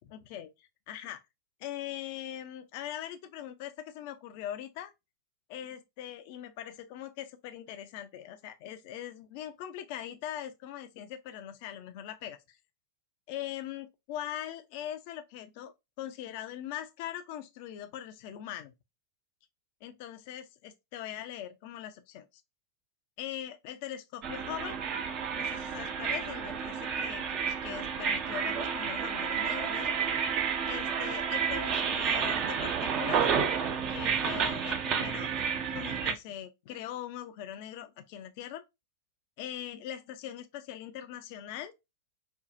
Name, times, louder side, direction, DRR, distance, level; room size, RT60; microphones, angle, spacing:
voice 1, 0.1-1.2 1.6-4.9 5.5-12.6 13.3-18.7 19.8-22.3 23.2-24.8 25.3-29.9 30.7-33.3 33.9-35.3 35.7-38.6 39.4-41.7, left 11 dB, 45° left, 0.5 m, -41 dB
sound 1, 24.2-36.1, right 7 dB, 35° right, 0.6 m, -31 dB
4.4 x 2.3 x 2.5 m
figure-of-eight pair, 90°, 0 cm